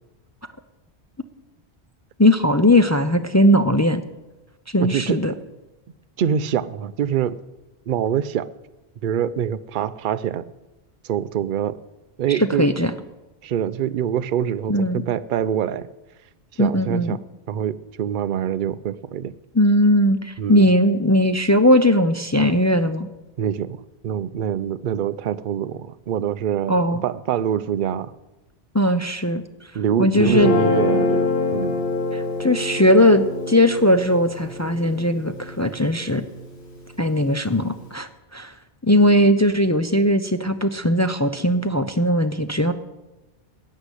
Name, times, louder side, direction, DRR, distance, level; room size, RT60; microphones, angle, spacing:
voice 1, 2.2-4.0 4.7-5.3 12.3-12.9 14.7-15.1 16.6-17.2 19.5-23.1 26.7-27.0 28.7-29.4 30.0-30.5 32.1-36.3 37.0-38.5 38.8-42.7, left 1 dB, 20° left, 8 dB, 0.5 m, -18 dB
voice 2, 4.8-5.2 6.2-7.4 7.9-8.5 9.0-10.4 11.0-11.8 12.2-12.7 13.4-15.9 16.5-17.2 17.5-19.3 20.4-20.7 23.4-28.1 29.7-31.8, right 9 dB, 55° right, 15 dB, 0.7 m, -25 dB
Guitar, 30.2-36.5, left 3 dB, 75° left, 4.7 m, -25 dB
14.5 x 6.6 x 9.9 m, 1.1 s
omnidirectional pair, 1.1 m